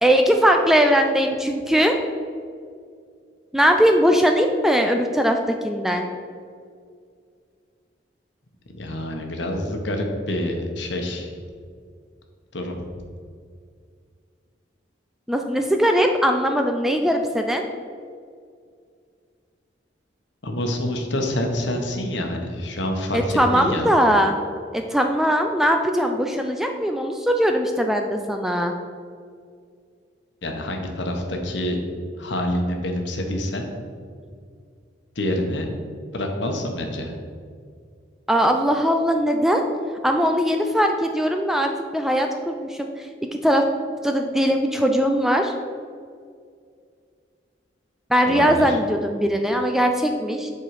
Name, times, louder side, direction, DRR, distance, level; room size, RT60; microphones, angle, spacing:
voice 1, 0.0-2.0 3.5-5.4 5.6-6.1 15.3-17.6 23.1-24.4 24.7-28.7 38.3-39.6 40.0-43.1 43.4-43.6 44.0-45.5 48.1-50.5, equal, ahead, 4 dB, 0.4 m, -20 dB
voice 2, 8.7-11.3 12.5-12.9 20.4-23.9 30.4-31.8 32.2-33.7 35.1-35.7 36.1-37.1 48.2-48.8, left 1 dB, 70° left, 3 dB, 1.1 m, -27 dB
7.6 x 4.8 x 4.8 m, 2.2 s
head